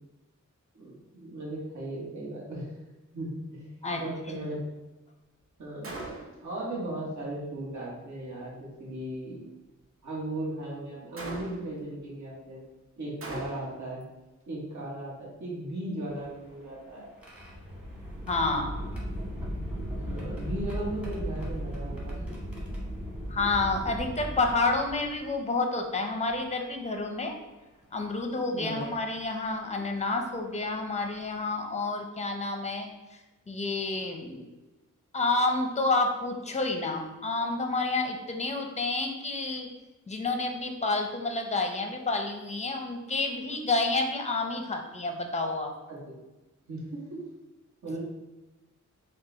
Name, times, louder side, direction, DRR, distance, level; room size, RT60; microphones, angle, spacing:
voice 1, 0.7-2.8 3.1-3.7 4.0-4.6 5.6-6.0 6.4-9.4 10.0-12.6 13.0-14.0 14.5-17.1 20.1-22.2 28.5-28.8 45.9-46.0 46.7-47.2 47.8-48.0, right 1 dB, 65° right, -5 dB, 1.3 m, -37 dB
Gunshot gunfire, 5.8-6.5 11.2-11.8 13.2-13.9, right 2 dB, 45° right, 0.7 m, -39 dB
sound 1, 16.1-25.4 26.3-26.4 27.8-28.0 28.8-29.0 30.6-30.7 31.1-31.4, equal, 5° right, 1.0 m, -37 dB
voice 2, 18.3-18.8 23.3-27.3 27.9-32.9 33.5-34.5 35.1-39.7 40.1-45.7, left 3 dB, 20° left, 4 dB, 0.5 m, -29 dB
5.2 x 2.3 x 3.8 m, 1.1 s
wide cardioid pair, 135°, 31 cm